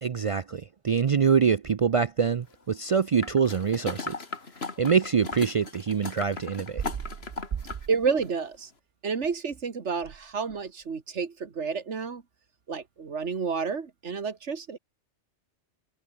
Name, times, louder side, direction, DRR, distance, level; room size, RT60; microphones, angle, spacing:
voice 1, 0.0-4.2 4.8-6.8, right 6 dB, 60° right, 0.3 m, -25 dB
sound 1, 3.2-7.9 8.2-8.3, left 4 dB, 60° left, 2.5 m, -37 dB
voice 2, 7.9-8.7 9.0-12.2 12.7-14.8, right 5 dB, 85° right, 2.0 m, -30 dB
omnidirectional pair, 1.2 m